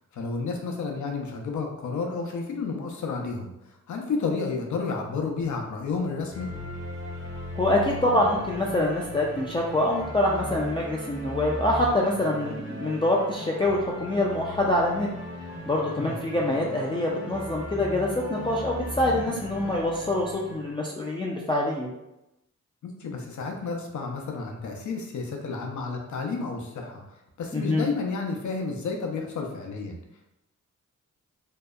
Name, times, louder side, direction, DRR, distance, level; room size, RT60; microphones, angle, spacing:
voice 1, 0.1-3.5 3.9-6.5 16.0-16.2 22.8-27.0 27.4-30.0, left 4 dB, 65° left, 2 dB, 0.6 m, -31 dB
sound 1, 6.3-20.8, equal, 40° right, 0.7 m, -37 dB
voice 2, 7.6-15.1 15.7-21.9 27.5-27.9, left 1 dB, 15° left, -4 dB, 0.3 m, -25 dB
2.7 x 2.0 x 2.3 m, 0.90 s
cardioid pair, 65°, 32 cm